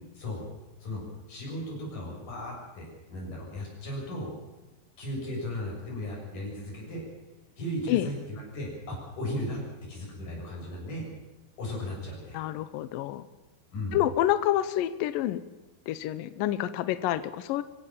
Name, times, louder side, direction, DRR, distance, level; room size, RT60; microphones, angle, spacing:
voice 1, 1.3-4.3 5.0-7.0 7.6-9.6 9.9-11.1 11.6-12.4 13.7-14.0, left 1 dB, 45° left, -2 dB, 8.3 m, -36 dB
voice 2, 12.3-13.3 13.9-15.4 15.9-17.6, left 13 dB, 85° left, 13 dB, 2.0 m, -28 dB
25.5 x 16.0 x 7.4 m, 1.1 s
omnidirectional pair, 5.2 m